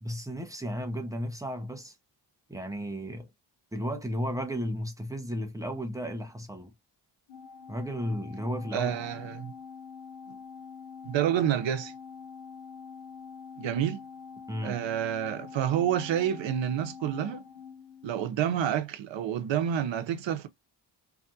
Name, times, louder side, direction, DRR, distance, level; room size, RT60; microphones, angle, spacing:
voice 1, 0.0-2.0 2.5-3.3 3.7-6.7 7.7-8.9 14.5-14.8, equal, 10° right, 0.6 m, -34 dB
Organ, 7.3-18.5, left 6 dB, 70° left, 0.8 m, -45 dB
voice 2, 8.7-9.5 11.0-11.9 13.6-14.0 14.6-17.4 18.0-20.5, right 10 dB, 80° right, 0.7 m, -28 dB
2.7 x 2.4 x 2.6 m
wide cardioid pair, 125°, 44 cm